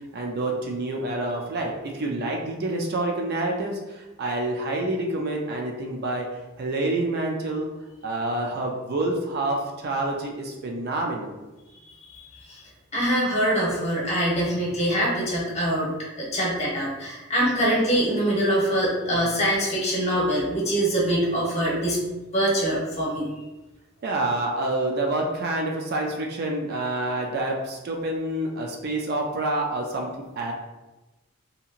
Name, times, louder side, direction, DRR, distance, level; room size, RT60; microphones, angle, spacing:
voice 1, 0.1-6.3 6.6-7.7 8.0-11.4 19.2-19.3 24.0-30.5, right 2 dB, 50° right, 0 dB, 0.4 m, -27 dB
voice 2, 11.8-12.6 12.9-15.9 16.2-22.0 22.3-23.3, right 1 dB, 30° left, -5 dB, 0.9 m, -24 dB
2.8 x 2.8 x 2.4 m, 1.1 s
head